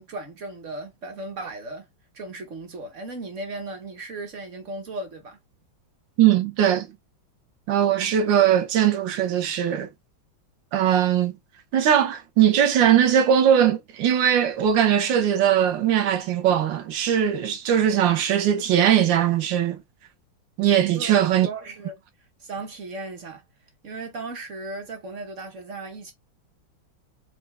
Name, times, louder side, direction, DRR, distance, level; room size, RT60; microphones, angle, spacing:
voice 1, 0.0-1.9 2.1-5.4 20.9-22.0 22.4-23.4 23.8-26.1, right 2 dB, 45° right, 1.2 m, -36 dB
voice 2, 6.2-6.9 7.7-9.9 10.7-11.3 11.7-19.8 20.6-21.5, right 9 dB, 75° right, 1.5 m, -20 dB
4.7 x 2.3 x 3.3 m
omnidirectional pair, 2.1 m